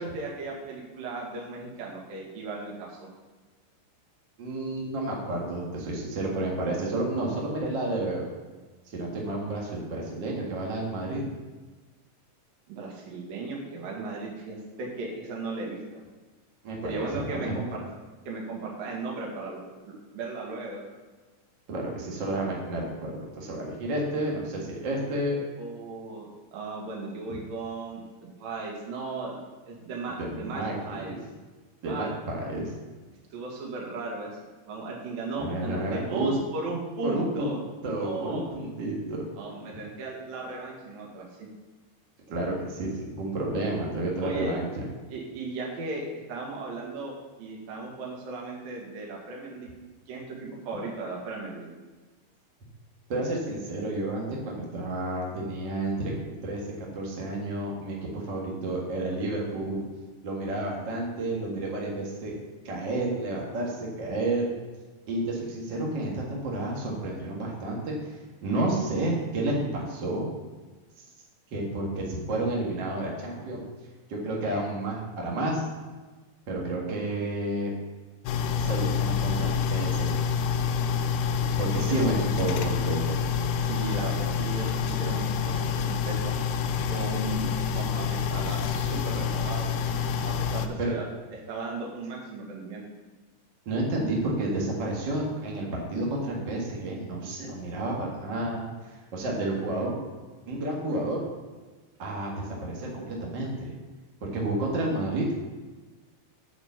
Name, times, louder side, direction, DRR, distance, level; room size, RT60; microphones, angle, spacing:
voice 1, 0.0-3.1 12.7-16.0 16.8-17.8 18.3-20.8 25.6-29.4 29.7-31.2 31.9-32.1 33.3-34.3 34.7-37.6 37.9-38.4 39.4-41.5 44.2-44.5 45.1-47.1 47.4-49.7 50.1-51.7 81.9-82.0 83.6-86.3 86.9-89.7 90.2-91.0 91.3-92.8, right 3 dB, 60° right, -2 dB, 3.0 m, -36 dB
voice 2, 4.4-8.2 8.9-11.2 16.6-17.6 21.7-25.4 30.2-31.0 31.8-32.7 35.4-36.3 37.0-37.5 37.8-39.2 42.3-44.8 53.1-59.9 60.2-62.3 62.6-64.5 65.1-70.3 71.5-73.6 74.1-75.6 76.5-77.7 78.6-80.2 81.6-83.2 90.8-90.9 93.6-99.9 100.5-101.2 102.0-103.7 104.2-105.2, right 2 dB, 85° right, -2 dB, 1.0 m, -30 dB
sound 1, 78.3-90.7, left 6 dB, 90° left, 2.2 m, -27 dB
8.3 x 5.3 x 7.1 m, 1.3 s
omnidirectional pair, 5.2 m